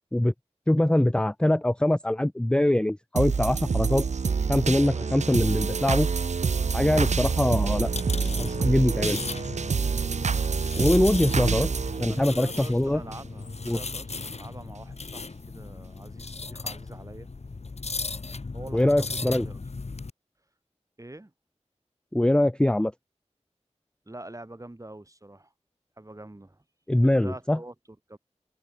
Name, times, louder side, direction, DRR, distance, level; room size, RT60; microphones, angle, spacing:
voice 1, 0.7-4.0 4.5-6.1 6.7-7.9 8.4-9.2 10.8-11.7 12.0-13.0 13.7-13.8 18.7-19.5 22.1-22.9 26.9-27.6, left 1 dB, 10° left, 0.4 m, -23 dB
sound 1, 3.1-13.2 13.7-13.8, right 5 dB, 80° right, 0.5 m, -27 dB
voice 2, 4.9-5.3 7.3-7.5 12.1-17.3 18.5-19.6 21.0-21.3 24.1-25.5 26.0-26.6 27.0-28.2, right 1 dB, 30° right, 5.4 m, -45 dB
sound 2, 6.5-20.1, left 3 dB, 65° left, 1.7 m, -37 dB
wide cardioid pair, 65°, 12 cm